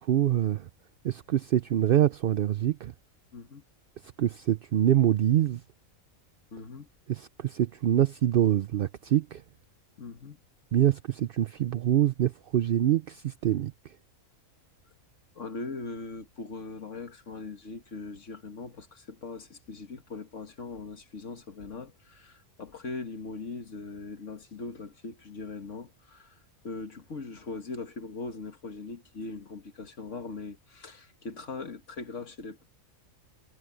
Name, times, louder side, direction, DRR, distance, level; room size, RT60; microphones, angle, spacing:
voice 1, 0.1-0.7 1.0-2.9 4.2-5.6 7.1-9.4 10.7-13.9, right 11 dB, 60° right, 0.6 m, -25 dB
voice 2, 3.3-3.6 6.5-6.9 10.0-10.4 15.4-32.6, left 3 dB, 60° left, 1.9 m, -40 dB
omnidirectional pair, 1.4 m